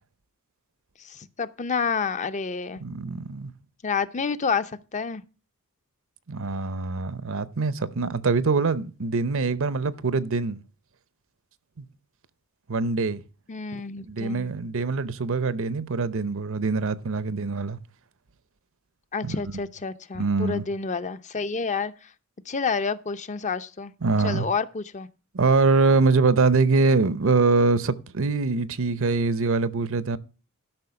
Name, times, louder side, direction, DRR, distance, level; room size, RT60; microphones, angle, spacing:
voice 1, 1.1-2.8 3.8-5.2 13.5-14.5 19.1-21.9 22.5-23.9 24.2-25.1, left 5 dB, 35° left, 0.6 m, -29 dB
voice 2, 2.8-3.5 6.3-10.6 11.8-11.9 12.7-13.2 14.1-17.8 19.2-19.3 20.1-20.6 24.0-24.5 25.3-30.2, right 4 dB, 65° right, 0.7 m, -23 dB
12.0 x 5.7 x 5.8 m
head